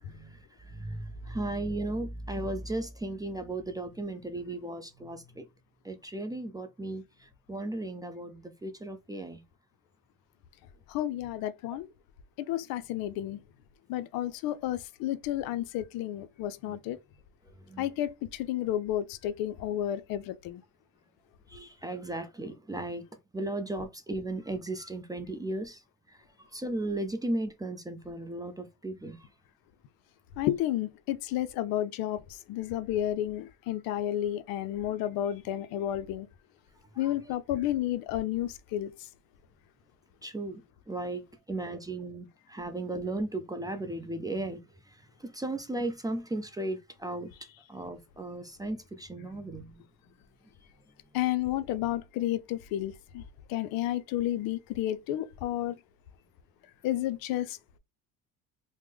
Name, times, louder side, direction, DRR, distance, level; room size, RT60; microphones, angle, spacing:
voice 1, 0.1-5.5 5.8-9.4 16.7-16.8 17.7-17.9 21.5-23.0 23.3-25.8 26.1-26.2 26.5-29.3 36.9-37.1 40.2-41.2 41.5-44.6 44.9-47.3 47.7-49.9, right 2 dB, 10° right, 0.4 m, -36 dB
voice 2, 10.9-11.9 12.4-13.4 13.9-17.0 17.8-20.6 30.4-36.3 37.0-38.9 51.1-53.2 53.5-55.7 56.8-57.6, left 12 dB, 65° left, 0.5 m, -31 dB
3.1 x 2.1 x 3.4 m
supercardioid pair, 95°, 38 cm